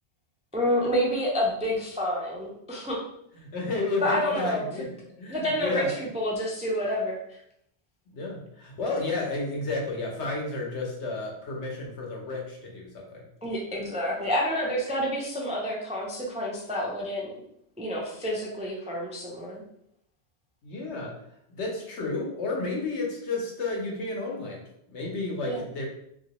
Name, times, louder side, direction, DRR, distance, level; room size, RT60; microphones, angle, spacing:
voice 1, 0.5-3.0 4.0-4.7 5.3-7.2 13.4-17.4 17.8-19.6 25.4-25.6, equal, 10° right, -2 dB, 0.3 m, -28 dB
voice 2, 3.3-6.0 8.1-13.3 20.6-21.1 21.5-25.9, left 3 dB, 85° left, -1 dB, 1.2 m, -32 dB
2.9 x 2.9 x 2.9 m, 0.73 s
omnidirectional pair, 1.1 m